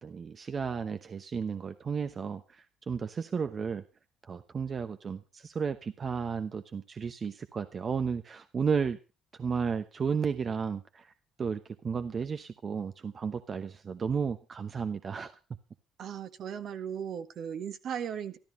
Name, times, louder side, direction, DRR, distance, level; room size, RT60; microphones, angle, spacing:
voice 1, 0.0-3.8 4.2-9.0 9.4-11.1 11.4-15.3, right 6 dB, 40° right, 9 dB, 1.0 m, -33 dB
voice 2, 16.0-18.4, right 8 dB, 60° right, 9 dB, 1.6 m, -37 dB
13.5 x 12.5 x 5.3 m, 0.32 s
supercardioid pair, 85°, 0 cm